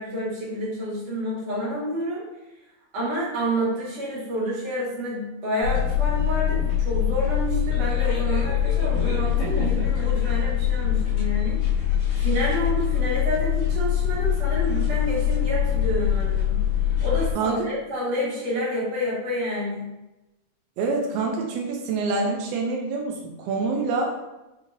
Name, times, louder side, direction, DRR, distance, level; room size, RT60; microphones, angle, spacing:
voice 1, 0.0-2.2 2.9-11.6 12.2-16.6 17.0-19.9, equal, 65° right, -7 dB, 2.6 m, -29 dB
sound 1, 5.6-17.3, left 10 dB, 75° left, 2.4 m, -23 dB
voice 2, 17.3-17.6 20.8-24.2, right 3 dB, 80° right, 0 dB, 1.5 m, -26 dB
6.5 x 2.7 x 2.6 m, 1.0 s
omnidirectional pair, 3.3 m